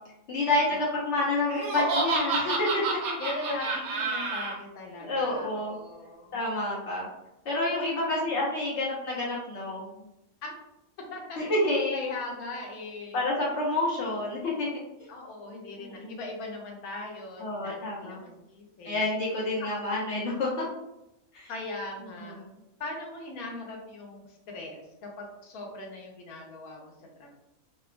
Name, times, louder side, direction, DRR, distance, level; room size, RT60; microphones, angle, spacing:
voice 1, 0.3-3.2 5.0-5.7 6.3-7.1 7.4-9.9 11.4-12.0 13.1-14.7 15.8-16.2 17.4-18.2 18.8-20.7 21.3-21.5 22.2-22.5, left 2 dB, 60° left, -5 dB, 0.8 m, -29 dB
Laughter, 1.5-4.5, right 3 dB, 80° right, 1.1 m, -29 dB
voice 2, 3.2-6.4 8.1-8.2 10.4-10.6 11.1-11.4 11.9-13.2 15.1-19.0 19.6-19.8 21.5-22.4 22.8-27.3, left 2 dB, 90° left, 0 dB, 1.1 m, -39 dB
2.8 x 2.2 x 2.4 m, 0.88 s
omnidirectional pair, 1.5 m